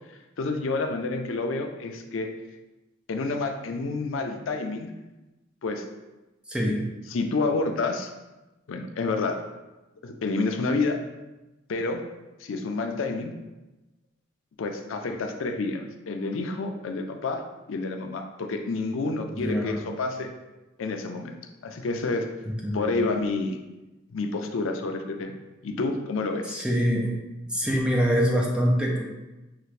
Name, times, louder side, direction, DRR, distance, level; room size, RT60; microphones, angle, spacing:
voice 1, 0.4-2.3 3.1-4.9 5.6-5.8 7.1-8.1 8.7-9.4 10.0-11.0 11.7-12.0 12.4-13.3 14.6-17.4 17.7-20.3 20.8-21.4 21.6-22.3 22.7-23.6 24.1-25.3 25.6-26.6, left 3 dB, 85° left, 4 dB, 0.5 m, -29 dB
voice 2, 6.5-6.8 19.3-19.8 22.5-23.0 26.5-27.1 27.5-29.0, equal, 5° right, -1 dB, 0.5 m, -24 dB
5.7 x 2.5 x 3.2 m, 1.1 s
head